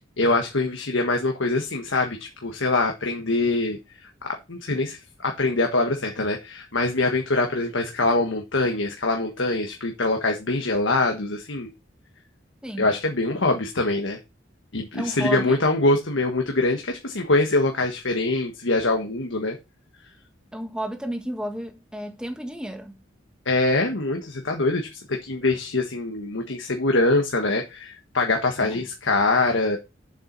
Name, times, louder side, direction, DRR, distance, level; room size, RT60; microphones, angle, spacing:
voice 1, 0.0-3.8 4.5-11.7 12.8-14.2 14.7-19.6 23.4-29.8, left 2 dB, 85° left, 1.5 m, -24 dB
voice 2, 12.6-12.9 14.9-15.6 20.5-23.0 28.6-28.8, equal, 5° right, 1.5 m, -32 dB
7.4 x 7.4 x 4.0 m
head